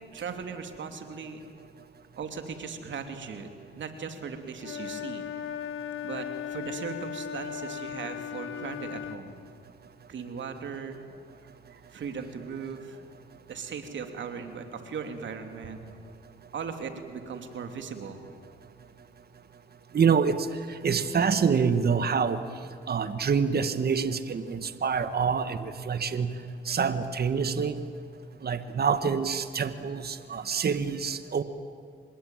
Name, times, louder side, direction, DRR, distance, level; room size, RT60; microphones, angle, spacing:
voice 1, 0.1-1.4 2.2-3.5 3.7-5.2 6.0-9.3 10.1-11.0 11.7-13.0 13.5-15.8 16.5-18.3, right 6 dB, 65° right, 6 dB, 3.0 m, -38 dB
Wind instrument woodwind instrument, 4.6-9.2, left 9 dB, 80° left, 1.6 m, -37 dB
voice 2, 19.9-22.4 22.9-26.3 26.6-27.8 28.4-31.4, right 6 dB, 50° right, 11 dB, 1.5 m, -26 dB
26.0 x 21.0 x 9.2 m, 2.3 s
cardioid pair, 70°, 20 cm